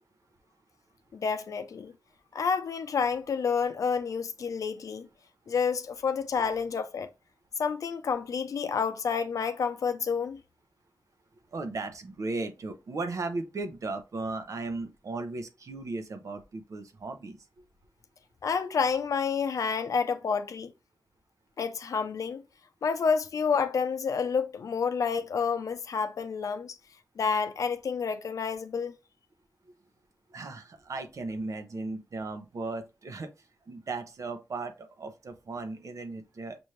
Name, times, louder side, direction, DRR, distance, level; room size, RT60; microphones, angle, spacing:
voice 1, 1.1-1.9 2.3-5.1 5.5-7.1 7.6-10.4 18.4-20.7 21.6-22.4 22.8-26.7 27.2-28.9, left 6 dB, 80° left, 0.6 m, -29 dB
voice 2, 11.5-17.4 30.3-36.6, right 3 dB, 70° right, 0.9 m, -36 dB
6.1 x 2.6 x 3.2 m
cardioid pair, 50°, 6 cm